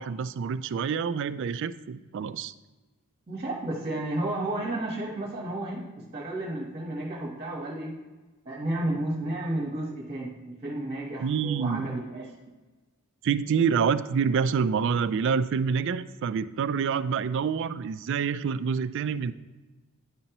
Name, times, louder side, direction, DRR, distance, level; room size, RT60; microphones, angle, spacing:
voice 1, 0.0-2.5 11.2-12.0 13.2-19.3, right 6 dB, 55° right, 13 dB, 0.3 m, -27 dB
voice 2, 3.3-5.9 6.1-8.0 8.4-12.2, right 1 dB, 30° right, -2 dB, 1.2 m, -32 dB
9.7 x 5.3 x 2.9 m, 1.2 s
head